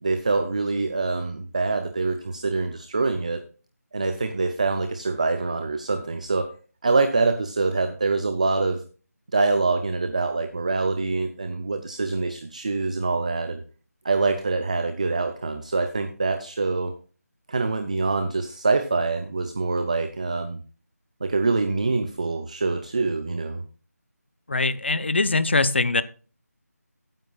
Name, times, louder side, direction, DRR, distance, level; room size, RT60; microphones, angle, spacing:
voice 1, 0.0-3.4 3.9-6.5 6.8-8.8 9.3-13.6 14.0-16.9 17.5-20.6 21.2-23.6, right 3 dB, 25° right, 10 dB, 0.5 m, -25 dB
voice 2, 24.5-26.0, left 3 dB, 45° left, 16 dB, 0.6 m, -22 dB
15.5 x 9.1 x 2.3 m, 0.36 s
figure-of-eight pair, 175°, 9 cm